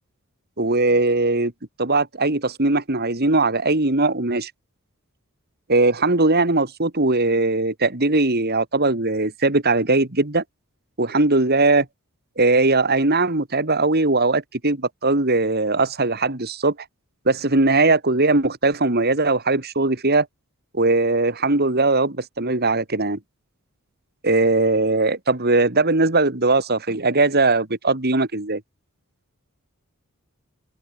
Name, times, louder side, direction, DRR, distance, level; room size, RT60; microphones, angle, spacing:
voice 1, 0.6-1.5 1.8-4.5 5.7-10.4 11.0-11.9 12.4-16.8 17.3-20.3 20.7-23.2 24.2-28.6, right 2 dB, 45° right, 2.4 m, -20 dB
open air
head